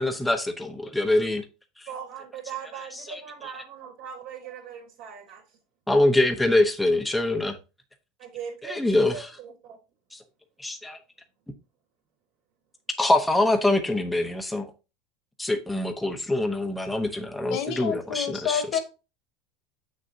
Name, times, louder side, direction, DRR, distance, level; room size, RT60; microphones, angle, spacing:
voice 1, 0.0-1.4 3.1-3.2 5.9-7.6 8.6-9.3 10.1-10.2 10.6-11.0 13.0-14.7 15.4-18.8, left 2 dB, 5° left, 0.9 m, -24 dB
voice 2, 1.9-5.4 8.2-9.8 17.4-17.5, right 7 dB, 60° right, 2.7 m, -40 dB
voice 3, 17.5-18.8, left 8 dB, 60° left, 1.7 m, -28 dB
7.5 x 6.4 x 2.7 m
supercardioid pair, 135°, 0 cm